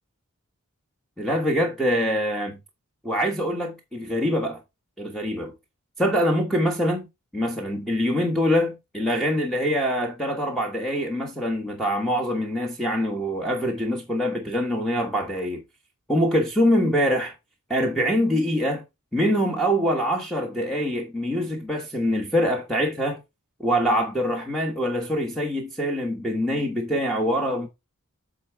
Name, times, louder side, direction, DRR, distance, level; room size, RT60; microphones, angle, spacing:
voice 1, 1.2-2.6 3.0-4.6 5.0-5.5 6.0-7.1 7.3-15.6 16.1-17.3 17.7-18.8 19.1-23.2 23.6-27.7, equal, ahead, 1.2 m, -24 dB
8.5 x 3.7 x 4.6 m
head